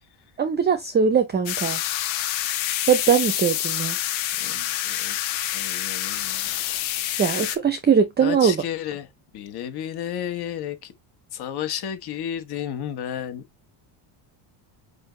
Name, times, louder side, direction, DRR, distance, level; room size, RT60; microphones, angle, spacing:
voice 1, 0.4-1.8 2.9-4.0 7.2-8.6, right 7 dB, 20° right, 0.7 m, -21 dB
sound 1, 1.5-7.6, left 13 dB, 65° left, 1.4 m, -27 dB
voice 2, 4.4-5.2 5.5-6.5 8.2-9.1 9.3-10.9 11.3-13.4, left 10 dB, 50° left, 1.7 m, -32 dB
5.6 x 5.4 x 3.2 m
cardioid pair, 165°, 50 cm